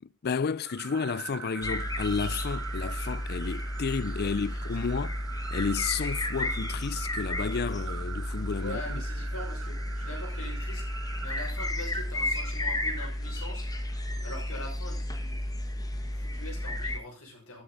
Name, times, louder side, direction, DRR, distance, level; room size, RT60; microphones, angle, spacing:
voice 1, 0.0-5.2 5.5-8.8, left 5 dB, 50° left, 0.5 m, -32 dB
sound 1, 0.6-14.0, right 8 dB, 75° right, 0.5 m, -44 dB
sound 2, 1.6-17.0, left 1 dB, 15° left, 1.3 m, -33 dB
voice 2, 4.2-4.6 4.9-5.0 8.6-10.8 11.2-13.7 14.2-15.4 15.9-17.6, left 1 dB, 80° left, 6.1 m, -43 dB
13.5 x 7.7 x 4.0 m
head